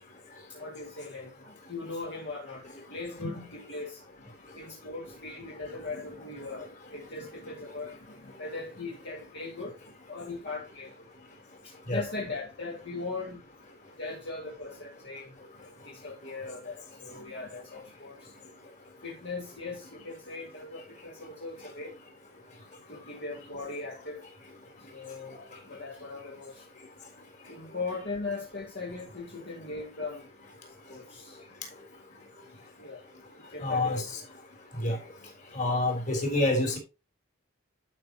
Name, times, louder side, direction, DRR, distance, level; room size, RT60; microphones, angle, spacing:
voice 1, 0.5-4.0 4.5-11.1 11.6-13.4 14.0-15.3 15.8-18.3 19.0-22.0 22.9-24.2 24.9-26.7 27.5-30.3 30.7-31.4 32.8-33.1 33.4-34.1, left 3 dB, 60° left, 2.2 m, -39 dB
voice 2, 33.6-34.0 34.8-35.0 35.5-36.8, left 2 dB, 40° left, 3.6 m, -27 dB
12.0 x 5.8 x 2.9 m
head